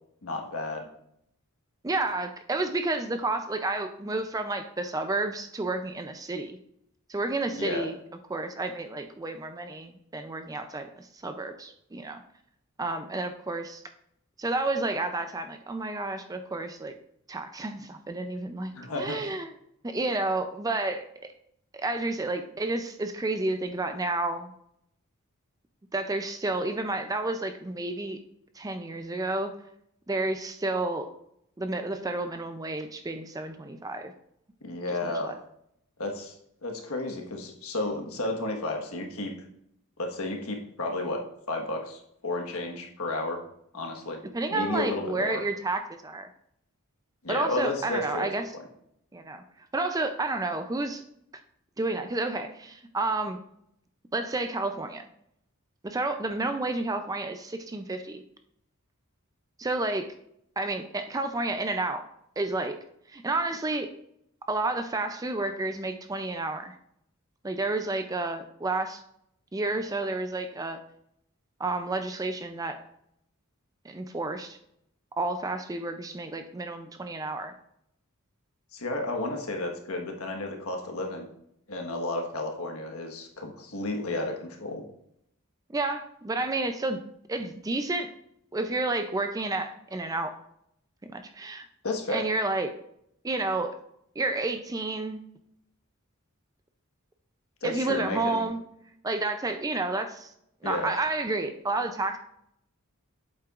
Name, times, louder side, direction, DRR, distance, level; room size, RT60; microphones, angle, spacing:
voice 1, 0.2-0.9 7.5-7.9 18.7-19.2 34.6-35.4 36.0-36.3 36.6-39.3 40.0-41.2 41.5-43.4 43.7-44.2 44.5-45.4 47.2-48.3 78.7-81.3 81.7-84.8 91.8-92.2 97.6-98.4 100.6-100.9, left 2 dB, 75° left, 2 dB, 1.4 m, -32 dB
voice 2, 1.8-6.6 7.1-8.0 8.3-12.2 12.8-13.8 14.4-16.9 17.3-19.5 19.8-21.1 21.7-24.5 25.9-28.2 28.5-29.5 30.1-31.1 31.6-34.1 35.0-35.3 44.3-46.3 47.3-48.4 49.1-49.4 49.7-51.0 51.8-53.4 54.1-55.1 55.8-58.2 59.6-60.1 60.6-62.0 62.4-62.8 63.1-63.9 64.5-66.8 67.4-69.0 69.5-70.8 71.6-72.8 73.8-74.6 75.2-77.6 85.7-87.0 87.3-88.1 88.5-90.3 91.1-91.7 92.1-92.7 93.2-93.8 94.2-95.2 97.6-98.6 99.0-100.3 100.6-102.2, right 2 dB, 15° right, 7 dB, 0.4 m, -30 dB
8.5 x 7.5 x 2.5 m, 0.74 s
head